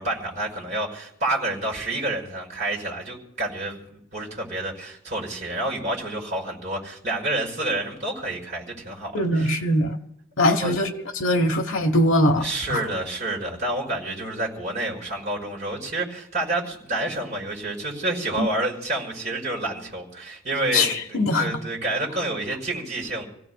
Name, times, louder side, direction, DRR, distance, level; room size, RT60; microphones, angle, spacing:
voice 1, 0.0-9.6 10.5-10.7 12.4-23.2, right 2 dB, 35° right, 5.4 m, -29 dB
voice 2, 9.1-10.0 10.4-12.8 18.4-18.5 20.7-21.6, left 1 dB, 60° left, 1.1 m, -22 dB
29.5 x 16.5 x 2.3 m
head